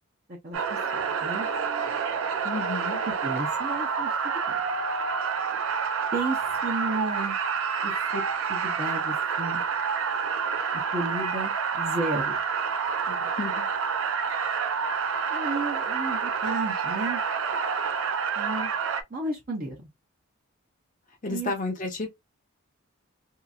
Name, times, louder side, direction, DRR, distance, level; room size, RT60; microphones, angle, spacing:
voice 1, 0.3-0.8 1.2-1.5 3.2-4.1 6.1-6.4 6.6-7.4 7.8-8.2 8.5-9.6 10.9-12.4 15.3-17.2 18.4-18.7 19.1-19.8 21.3-21.5, right 2 dB, 40° right, 0.9 m, -32 dB
sound 1, 0.5-19.0, right 6 dB, 70° right, 0.5 m, -28 dB
voice 2, 2.4-3.0 13.1-13.7 21.2-22.1, left 3 dB, 40° left, 0.8 m, -32 dB
2.8 x 2.6 x 2.3 m
head